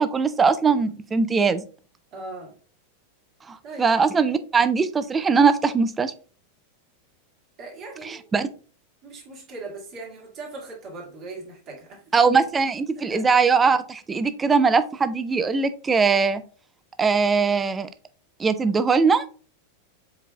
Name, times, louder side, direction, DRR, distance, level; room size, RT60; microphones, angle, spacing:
voice 1, 0.0-1.6 3.5-6.1 8.0-8.5 12.1-16.4 17.0-17.9 18.4-19.2, right 5 dB, 15° right, 12 dB, 0.4 m, -21 dB
voice 2, 2.1-2.5 3.6-4.2 7.6-8.3 9.0-12.0 13.1-13.2, right 3 dB, 35° right, -1 dB, 1.8 m, -39 dB
4.7 x 4.5 x 2.3 m, 0.40 s
figure-of-eight pair, 90°, 0 cm